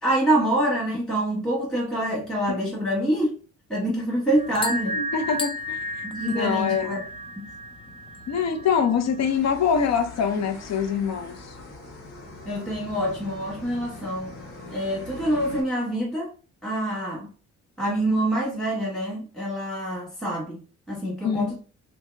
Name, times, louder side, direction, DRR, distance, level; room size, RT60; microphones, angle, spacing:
voice 1, 0.0-3.3 3.7-5.0 6.0-7.1 7.4-7.5 12.4-14.3 14.7-16.3 16.6-17.3 17.8-20.6 20.9-21.6, right 1 dB, ahead, 1.4 m, -26 dB
sound 1, 4.3-9.4, equal, 15° left, 0.5 m, -33 dB
voice 2, 4.9-7.0 8.3-11.6 21.2-21.5, left 7 dB, 60° left, 0.7 m, -25 dB
sound 2, 9.2-15.6, left 3 dB, 75° left, 1.6 m, -42 dB
2.8 x 2.7 x 3.4 m
cardioid pair, 90°, 30 cm